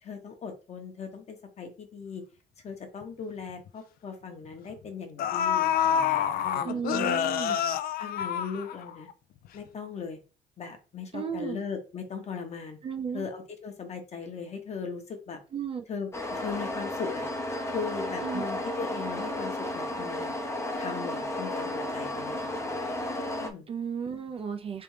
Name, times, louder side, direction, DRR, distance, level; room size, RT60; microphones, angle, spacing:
voice 1, 0.0-2.2 2.6-7.6 8.0-9.1 9.5-10.2 10.6-12.8 13.1-15.4 15.9-17.3 17.7-20.3 20.8-23.0 23.4-23.7, left 5 dB, 40° left, 5 dB, 1.0 m, -38 dB
sound 1, 3.0-3.1 3.5-3.7 4.7-4.8 5.2-9.1 9.5-9.6, left 9 dB, 60° left, 0.4 m, -27 dB
voice 2, 6.6-7.6 11.1-11.6 12.8-13.3 15.5-15.8 18.2-18.5 23.7-24.8, right 7 dB, 35° right, 7 dB, 0.4 m, -34 dB
sound 2, 16.1-23.5, left 1 dB, 15° left, 0.6 m, -33 dB
3.4 x 3.4 x 3.2 m, 0.34 s
cardioid pair, 110°, 17 cm